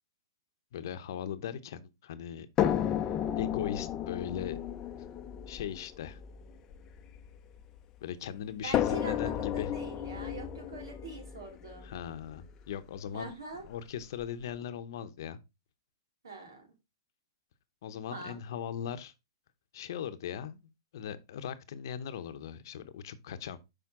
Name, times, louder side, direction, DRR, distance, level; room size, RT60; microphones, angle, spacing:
voice 1, 0.7-2.5 3.4-4.6 5.5-6.2 8.0-9.7 11.8-13.3 13.7-15.4 17.8-19.1 19.7-20.6 20.9-23.6, left 9 dB, 65° left, 0.7 m, -39 dB
sound 1, 2.6-7.8 8.7-12.7 13.7-13.8 14.2-14.3, left 10 dB, 25° left, 0.6 m, -33 dB
voice 2, 8.6-11.9 13.1-13.6 16.2-16.7 18.1-18.4, right 3 dB, 85° right, 2.9 m, -44 dB
6.0 x 5.1 x 3.7 m
hypercardioid pair, 135°, 2 cm